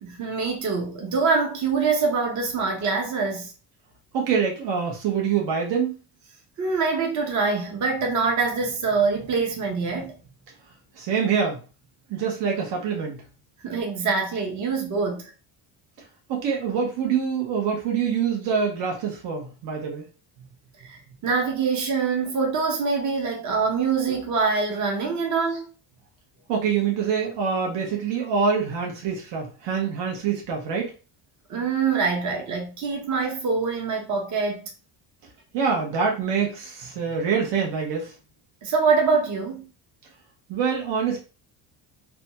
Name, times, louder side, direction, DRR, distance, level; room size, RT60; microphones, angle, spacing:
voice 1, 0.0-3.5 6.6-10.1 13.6-15.2 20.8-25.7 31.5-34.7 38.6-39.7, right 4 dB, 40° right, 0.7 m, -24 dB
voice 2, 4.1-5.9 11.0-11.6 12.1-13.2 16.3-20.1 26.5-30.9 35.5-38.1 40.5-41.2, right 6 dB, 70° right, 0.9 m, -25 dB
2.7 x 2.2 x 2.8 m
cardioid pair, 130°, 45 cm